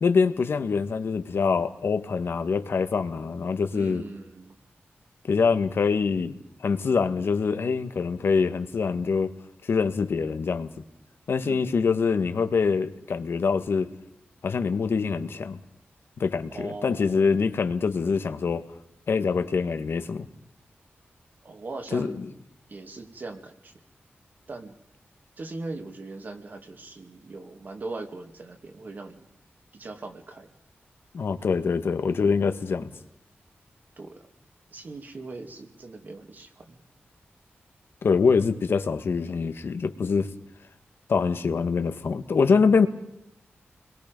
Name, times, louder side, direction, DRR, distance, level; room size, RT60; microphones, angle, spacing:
voice 1, 0.0-4.0 5.3-6.3 6.6-9.3 9.6-10.7 11.3-13.9 14.4-15.6 16.2-18.7 19.1-20.3 21.9-22.2 31.1-32.9 38.0-40.3 41.1-42.9, left 5 dB, 70° left, 9 dB, 1.5 m, -24 dB
voice 2, 3.7-4.5 11.4-11.7 16.5-17.3 21.4-22.2 22.7-23.7 24.5-24.8 25.4-29.3 29.7-30.5 34.0-34.3 34.7-36.8, right 3 dB, 50° right, 6 dB, 2.3 m, -40 dB
30.0 x 21.5 x 5.3 m, 0.80 s
wide cardioid pair, 150°, 4 cm